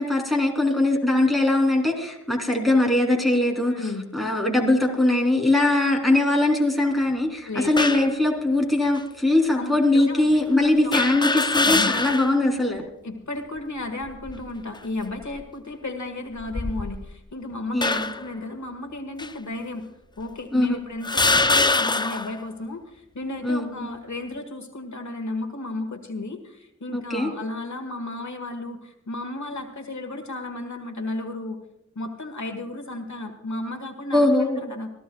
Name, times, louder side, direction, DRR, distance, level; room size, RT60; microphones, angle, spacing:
voice 1, 0.0-3.8 4.1-12.8 17.7-18.1 20.5-20.8 23.4-23.9 26.9-27.3 34.1-34.7, left 2 dB, ahead, 0 dB, 3.1 m, -21 dB
voice 2, 3.7-4.1 7.5-7.9 9.5-10.3 10.8-10.9 11.6-12.0 13.0-19.8 20.2-31.6 32.0-34.9, left 2 dB, 70° left, 6 dB, 1.6 m, -34 dB
sound 1, 7.8-8.1 9.0-9.1 10.9-12.4 12.8-12.9 14.0-14.5 15.2-15.4 16.4-17.2 17.8-18.3 19.2-19.3 20.2-20.3 21.0-22.4, left 3 dB, 15° left, 0.4 m, -23 dB
26.5 x 14.0 x 2.3 m, 0.83 s
wide cardioid pair, 90°, 30 cm